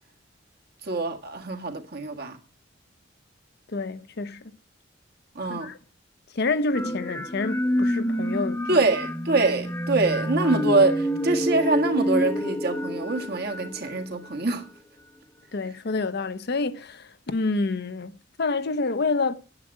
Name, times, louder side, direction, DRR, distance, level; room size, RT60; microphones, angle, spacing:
voice 1, 0.8-2.4 5.4-5.7 8.7-14.7, right 3 dB, 55° right, 1.7 m, -24 dB
voice 2, 3.7-4.4 5.5-5.8 6.3-8.9 15.5-18.1 18.4-19.3, left 3 dB, 55° left, 0.7 m, -28 dB
sound 1, 6.7-14.5, equal, 15° left, 0.8 m, -28 dB
9.8 x 7.6 x 8.6 m
head